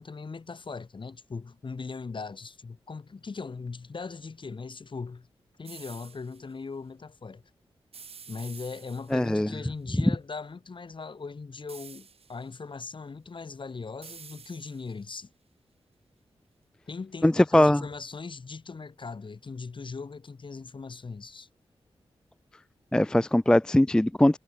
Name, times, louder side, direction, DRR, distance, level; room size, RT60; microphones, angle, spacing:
voice 1, 0.0-5.3 5.6-7.4 8.3-15.3 16.9-21.5, left 4 dB, 50° left, 2.3 m, -39 dB
sound 1, 5.6-6.4 7.9-9.4 11.7-12.5 14.0-15.1, right 6 dB, 70° right, 1.8 m, -49 dB
voice 2, 9.1-9.5 17.2-17.8 22.9-24.4, left 1 dB, 5° left, 0.3 m, -21 dB
cardioid pair, 60°, 10 cm